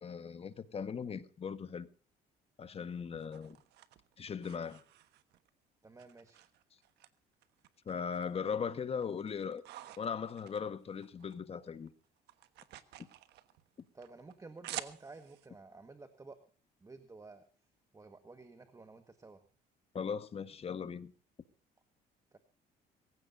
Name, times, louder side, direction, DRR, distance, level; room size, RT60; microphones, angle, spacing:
voice 1, 0.0-1.9 2.6-3.6 4.2-4.8 7.8-9.6 10.0-11.9 19.9-21.1, left 6 dB, 35° left, 1.5 m, -38 dB
sound 1, 2.6-5.5 6.0-7.1 7.4-8.4 8.8-11.4 11.7-15.5, right 14 dB, 80° right, 1.3 m, -50 dB
voice 2, 5.8-6.4 13.9-16.4 16.8-17.4 17.9-19.4 22.3-22.4, right 3 dB, 20° right, 1.6 m, -52 dB
23.0 x 16.0 x 2.7 m
cardioid pair, 110°, 17 cm